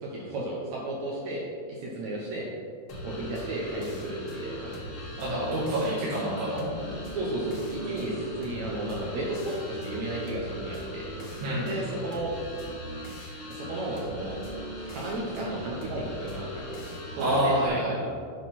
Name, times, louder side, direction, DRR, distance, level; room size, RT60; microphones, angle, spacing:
voice 1, 0.0-2.5 3.0-4.9 7.1-11.1 11.6-12.3 13.5-14.4 14.7-16.8 17.2-17.8, right 1 dB, 70° right, -4 dB, 1.8 m, -34 dB
sound 1, 2.9-17.7, equal, 75° left, 1.2 m, -38 dB
voice 2, 5.2-6.6 11.4-11.7 17.2-17.9, right 1 dB, 85° right, -8 dB, 3.6 m, -27 dB
9.2 x 5.9 x 4.2 m, 2.1 s
omnidirectional pair, 4.4 m